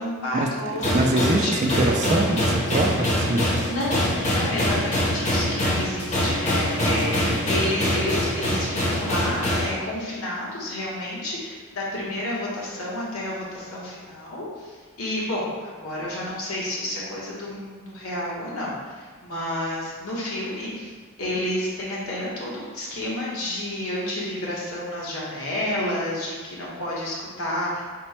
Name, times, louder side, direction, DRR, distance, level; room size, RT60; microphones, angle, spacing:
voice 1, 0.0-0.8 1.3-1.9 3.7-20.9 21.2-27.8, left 1 dB, 75° left, -6 dB, 1.1 m, -30 dB
sound 1, 0.8-9.7, left 1 dB, 35° left, 0.8 m, -24 dB
voice 2, 0.9-3.5 6.8-7.4, right 2 dB, 35° right, 2 dB, 0.3 m, -24 dB
4.2 x 2.2 x 4.2 m, 1.5 s
head